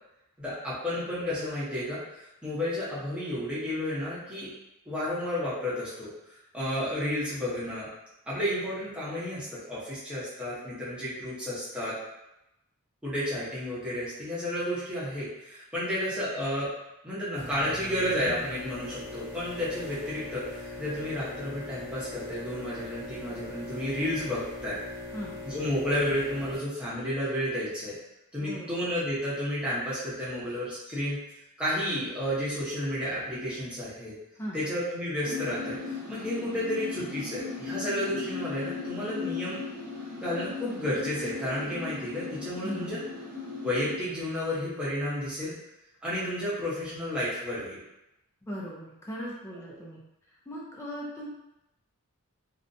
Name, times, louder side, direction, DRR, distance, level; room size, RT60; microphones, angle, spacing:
voice 1, 0.4-2.0 2.4-4.5 4.8-6.1 6.5-7.9 8.3-12.0 13.0-16.7 17.0-24.8 25.4-28.0 28.3-31.2 31.6-34.1 34.5-39.6 40.2-43.0 43.6-45.5 46.0-47.8, left 1 dB, 5° right, -10 dB, 0.9 m, -31 dB
sound 1, 17.3-26.6, left 2 dB, 50° right, 0.8 m, -41 dB
voice 2, 28.4-28.8 34.4-34.6 42.6-43.0 48.4-50.0 50.5-51.3, equal, 10° left, -5 dB, 0.4 m, -38 dB
sound 2, 35.2-44.0, left 4 dB, 85° right, 0.9 m, -37 dB
2.5 x 2.1 x 2.6 m, 0.90 s
head